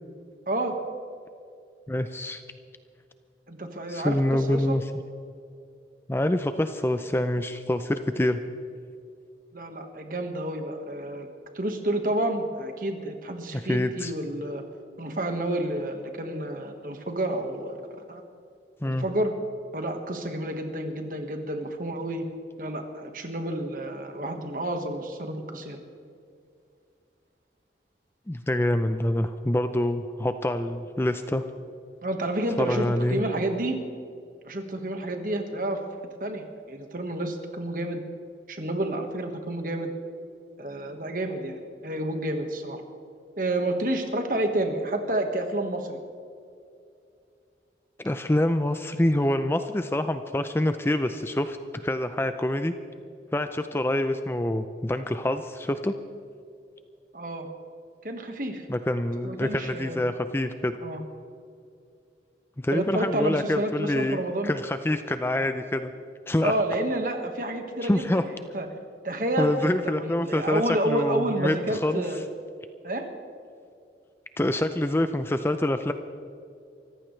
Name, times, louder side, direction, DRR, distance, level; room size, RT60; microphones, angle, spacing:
voice 1, 0.5-0.8 3.5-4.8 9.5-11.3 11.5-14.6 15.0-18.2 18.8-19.3 19.7-22.2 22.6-25.8 32.0-33.8 34.4-35.8 36.2-38.0 38.5-39.9 40.6-42.8 43.4-46.0 57.1-57.5 58.0-58.6 59.2-60.0 60.8-61.0 62.7-64.5 66.4-68.2 68.5-68.7 69.0-72.2 72.8-73.1, right 1 dB, 50° right, 5 dB, 1.5 m, -30 dB
voice 2, 1.9-2.4 3.9-4.8 6.1-8.4 13.5-14.1 18.8-19.1 28.3-31.4 32.6-33.2 48.0-52.7 53.3-55.9 58.7-60.7 62.6-64.2 64.4-65.9 66.3-66.5 67.8-68.2 69.4-72.0 74.4-75.9, left 1 dB, 15° left, 9 dB, 0.5 m, -26 dB
24.5 x 15.0 x 3.3 m, 2.5 s
head